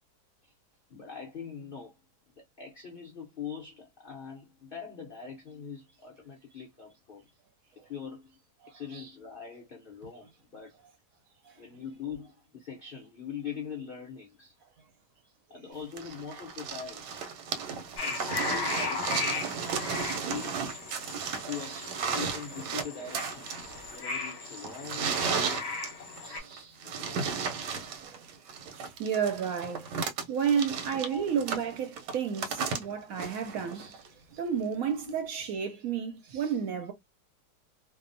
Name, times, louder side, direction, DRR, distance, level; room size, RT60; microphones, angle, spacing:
voice 1, 0.9-2.0 2.4-7.3 7.8-8.4 8.7-10.7 11.6-14.5 15.5-17.2 17.8-19.2 20.2-20.6 21.5-23.5 23.9-25.6 26.8-27.5 30.5-30.8 31.1-31.3, left 7 dB, 80° left, 0.5 m, -42 dB
voice 2, 8.6-9.1 26.2-26.8 28.0-28.2 28.7-34.0 34.3-36.9, right 7 dB, 70° right, 0.9 m, -32 dB
sound 1, 16.0-34.1 35.1-35.2, right 6 dB, 85° right, 1.2 m, -34 dB
sound 2, 18.0-26.4, left 4 dB, 50° left, 1.0 m, -37 dB
2.7 x 2.0 x 2.5 m
omnidirectional pair, 1.8 m